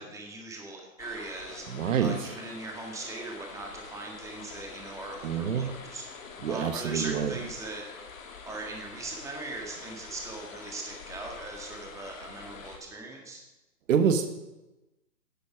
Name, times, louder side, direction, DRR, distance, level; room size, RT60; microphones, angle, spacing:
voice 1, 0.0-1.6 2.0-6.1 6.5-7.8 8.4-13.4, right 3 dB, 5° right, 1 dB, 1.7 m, -40 dB
sound 1, 1.0-12.8, left 5 dB, 60° left, 2.6 m, -46 dB
voice 2, 1.7-2.1 5.2-5.7 6.4-7.3 13.9-14.3, right 7 dB, 55° right, 9 dB, 1.2 m, -26 dB
11.0 x 9.1 x 6.1 m, 1.0 s
hypercardioid pair, 145°, 46 cm